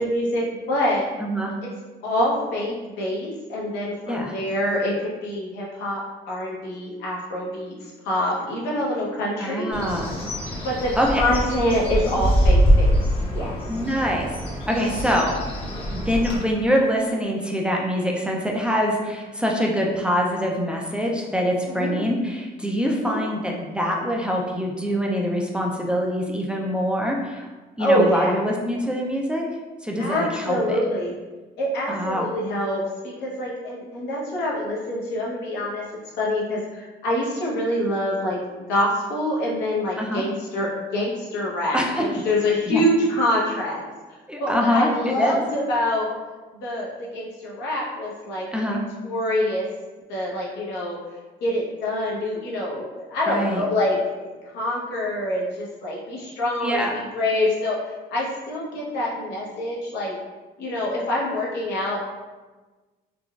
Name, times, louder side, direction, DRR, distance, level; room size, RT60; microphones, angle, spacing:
voice 1, 0.0-1.1 1.6-1.7 2.0-6.0 6.3-9.7 10.6-13.0 13.3-13.6 21.7-21.9 22.9-23.2 27.8-28.4 30.0-31.2 31.6-35.8 36.2-38.4 38.7-43.8 44.4-46.2 46.5-48.4 49.0-49.7 50.1-51.0 51.4-60.1 60.6-62.0, left 1 dB, 80° left, -4 dB, 0.9 m, -25 dB
voice 2, 1.2-1.5 4.1-4.3 9.4-10.1 11.0-11.2 13.7-14.3 14.7-15.4 15.9-27.5 27.8-29.4 29.8-30.8 31.9-32.2 40.0-40.2 41.7-42.1 42.7-42.8 44.3-45.4 48.5-48.8 53.3-53.6 56.6-57.0, equal, 5° right, -1 dB, 0.3 m, -24 dB
Bird, 9.7-16.4, equal, 30° left, 0.9 m, -23 dB
3.8 x 2.2 x 2.3 m, 1.3 s
cardioid pair, 110°, 17 cm